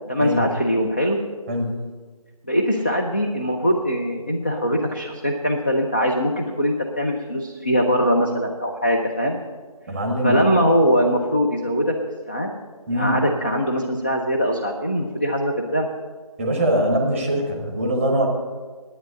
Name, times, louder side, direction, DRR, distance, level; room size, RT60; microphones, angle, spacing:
voice 1, 0.1-1.2 2.4-9.4 10.2-12.0 12.3-12.5 12.9-15.9, equal, 20° left, 1 dB, 0.5 m, -22 dB
voice 2, 9.9-10.4 12.9-13.2 16.4-18.3, equal, 5° right, 0 dB, 1.0 m, -22 dB
11.0 x 9.3 x 8.8 m, 1.4 s
figure-of-eight pair, 160°, 19 cm